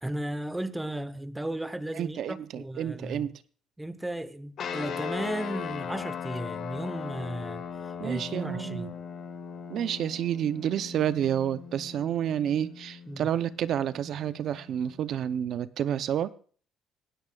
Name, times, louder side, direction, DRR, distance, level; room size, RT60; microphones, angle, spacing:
voice 1, 0.0-3.3 3.8-7.7 8.0-8.9 13.1-13.3, right 1 dB, 5° right, 0.8 m, -35 dB
voice 2, 1.9-3.4 8.0-8.9 9.7-16.4, right 10 dB, 55° right, 0.6 m, -30 dB
sound 1, 4.6-15.2, left 7 dB, 45° left, 1.9 m, -39 dB
26.0 x 9.7 x 2.3 m
cardioid pair, 150°, 0 cm